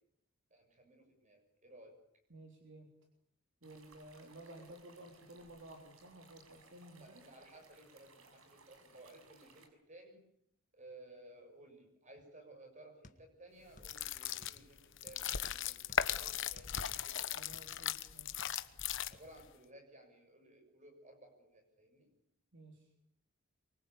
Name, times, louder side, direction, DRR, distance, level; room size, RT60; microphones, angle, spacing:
voice 1, 0.5-2.0 4.5-4.6 7.0-10.2 10.7-16.8 17.0-17.4 19.1-22.1, right 1 dB, 35° right, 5 dB, 7.1 m, -58 dB
voice 2, 2.3-2.9 3.6-7.2 17.3-18.5 22.5-22.9, right 1 dB, 55° right, 2 dB, 3.6 m, -54 dB
sound 1, 3.6-9.7, right 3 dB, 70° right, 6.0 m, -63 dB
sound 2, 13.0-14.0 14.2-15.4 15.9-17.7 18.2-18.8 19.1-19.3, left 1 dB, 35° left, 1.9 m, -61 dB
sound 3, 13.8-19.4, left 9 dB, 55° left, 1.1 m, -38 dB
24.5 x 23.5 x 8.5 m, 0.73 s
head